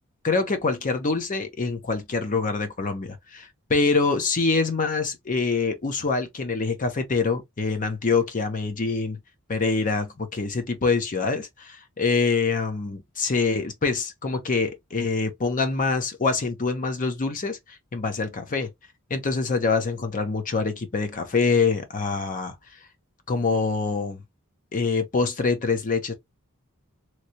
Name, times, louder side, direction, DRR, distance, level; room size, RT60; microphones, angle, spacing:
voice 1, 0.2-9.2 9.5-17.6 17.9-18.7 19.1-22.6 23.3-24.2 24.7-26.1, left 4 dB, 40° left, 0.6 m, -25 dB
3.0 x 2.7 x 2.8 m
head